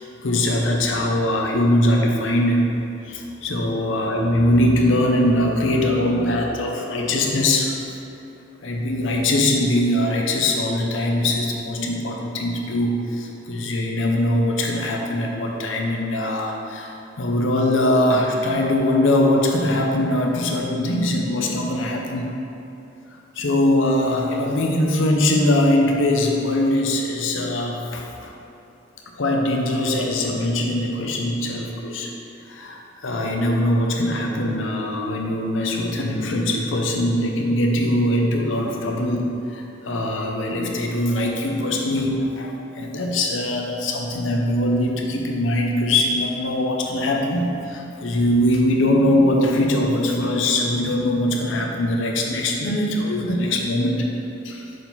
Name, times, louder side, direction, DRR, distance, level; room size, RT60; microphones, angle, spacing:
voice 1, 0.0-2.6 3.0-7.8 8.6-22.3 23.4-28.3 29.2-32.1 32.5-39.2 39.5-54.1 54.4-54.7, left 1 dB, 80° left, 0 dB, 0.8 m, -21 dB
6.6 x 4.1 x 4.0 m, 2.8 s
head